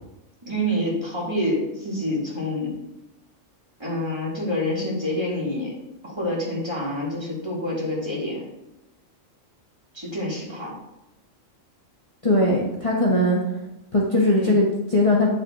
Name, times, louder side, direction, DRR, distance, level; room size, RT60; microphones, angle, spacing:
voice 1, 0.4-2.8 3.8-5.8 6.0-8.4 9.9-10.7 14.3-14.6, left 1 dB, 20° right, -5 dB, 1.9 m, -27 dB
voice 2, 12.2-13.4 13.9-15.3, left 1 dB, 30° left, -4 dB, 1.0 m, -20 dB
8.9 x 6.3 x 2.5 m, 0.94 s
omnidirectional pair, 1.3 m